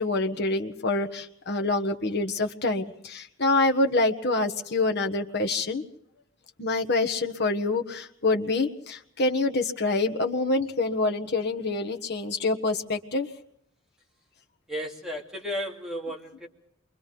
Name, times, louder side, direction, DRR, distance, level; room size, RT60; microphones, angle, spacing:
voice 1, 0.0-5.8 6.6-13.3, left 2 dB, 55° left, 4 dB, 1.5 m, -26 dB
voice 2, 14.7-16.5, equal, 5° right, -2 dB, 2.8 m, -34 dB
28.5 x 24.0 x 3.9 m, 0.73 s
head